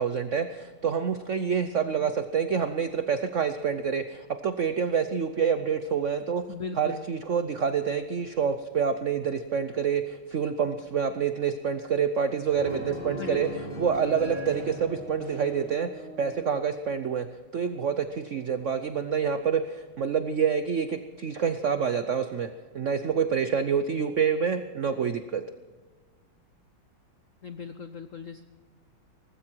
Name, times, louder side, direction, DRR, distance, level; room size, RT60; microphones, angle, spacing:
voice 1, 0.0-6.4 6.8-13.5 13.8-17.3 17.5-25.4, right 7 dB, 90° right, 10 dB, 0.6 m, -27 dB
voice 2, 6.5-7.0 13.2-13.4 27.4-28.4, left 5 dB, 90° left, 10 dB, 0.6 m, -38 dB
sound 1, 12.5-16.6, left 1 dB, 50° left, 7.8 m, -39 dB
19.5 x 15.5 x 4.6 m, 1.4 s
omnidirectional pair, 2.3 m